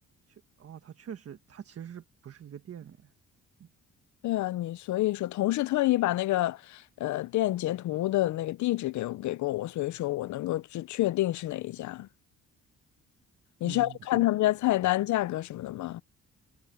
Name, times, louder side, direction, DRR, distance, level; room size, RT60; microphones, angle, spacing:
voice 1, 0.3-3.1 3.6-3.7 13.6-14.3, right 9 dB, 50° right, 1.5 m, -45 dB
voice 2, 4.2-12.1 13.6-16.0, left 16 dB, 70° left, 0.6 m, -28 dB
cardioid pair, 90°, 30 cm